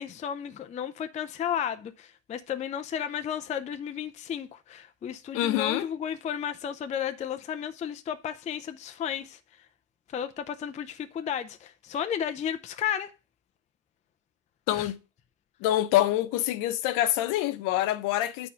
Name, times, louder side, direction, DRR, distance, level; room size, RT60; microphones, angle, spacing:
voice 1, 0.0-9.7 10.1-13.1 14.7-14.9, left 9 dB, 20° left, 0.5 m, -33 dB
voice 2, 5.3-5.9 14.7-15.0 15.6-18.5, left 14 dB, 55° left, 1.0 m, -26 dB
8.7 x 4.4 x 5.5 m
supercardioid pair, 105°, 38 cm